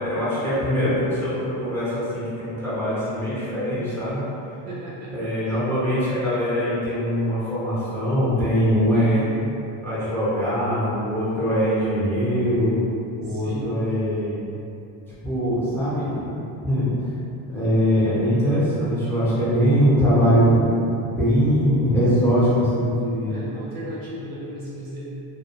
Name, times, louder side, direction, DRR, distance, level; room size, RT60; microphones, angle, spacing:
voice 1, 0.0-4.2 5.1-9.2 9.8-12.7 13.2-14.4 15.2-16.4 16.6-17.1 17.5-20.8 21.2-23.4, equal, 5° left, -12 dB, 0.6 m, -22 dB
voice 2, 4.6-5.1 5.5-5.6 8.9-9.3 13.2-13.7 23.2-25.1, right 1 dB, 50° right, -6 dB, 0.6 m, -35 dB
2.2 x 2.0 x 2.8 m, 2.7 s
cardioid pair, 140°, 47 cm